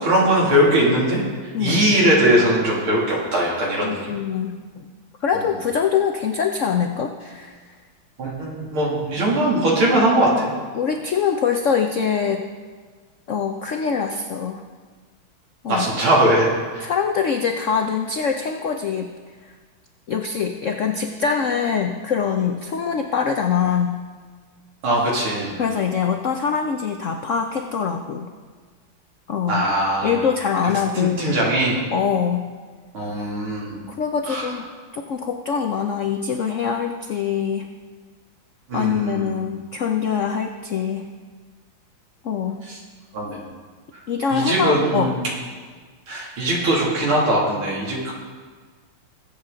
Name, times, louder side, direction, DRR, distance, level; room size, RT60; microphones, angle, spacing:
voice 1, 0.0-4.1 8.2-10.5 15.7-16.9 24.8-25.5 29.5-30.2 30.6-31.8 32.9-33.8 34.3-34.5 38.7-39.4 42.6-42.8 43.1-43.4 44.3-45.3 46.1-48.1, right 1 dB, 85° right, -4 dB, 3.6 m, -20 dB
voice 2, 3.8-4.8 5.2-7.5 10.7-12.4 13.3-14.6 15.6-15.9 16.8-19.1 20.1-24.0 25.6-28.3 29.3-29.6 30.0-31.4 31.9-32.5 33.9-34.6 34.9-37.7 38.7-41.1 42.2-42.6 44.1-45.1, left 6 dB, 75° left, 4 dB, 0.7 m, -23 dB
20.5 x 8.2 x 3.9 m, 1.5 s
omnidirectional pair, 2.3 m